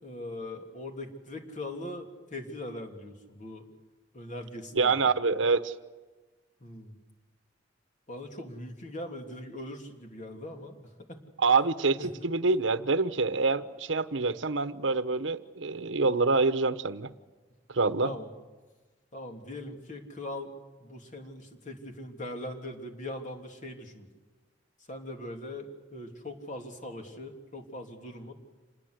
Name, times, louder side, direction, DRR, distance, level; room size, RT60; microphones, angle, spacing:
voice 1, 0.0-3.7 4.1-5.1 6.6-7.0 8.1-10.8 11.1-11.2 12.0-12.1 18.0-18.3 19.1-20.5 20.8-24.1 24.9-28.3, left 1 dB, 40° left, 4 dB, 3.3 m, -41 dB
voice 2, 4.7-5.7 11.4-17.1 17.7-18.1, right 4 dB, 85° right, 13 dB, 1.1 m, -26 dB
27.0 x 20.5 x 8.1 m, 1.3 s
head